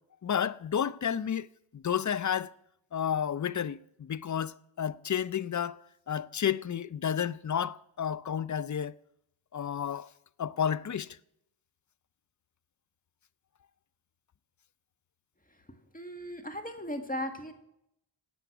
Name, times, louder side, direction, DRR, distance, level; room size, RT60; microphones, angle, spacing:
voice 1, 0.2-1.5 1.7-2.5 2.9-5.8 6.1-8.9 9.5-10.1 10.4-11.1, left 8 dB, 40° left, 0.5 m, -31 dB
voice 2, 15.9-17.5, equal, 15° left, 1.9 m, -37 dB
17.5 x 8.2 x 6.0 m
cardioid pair, 45°, 48 cm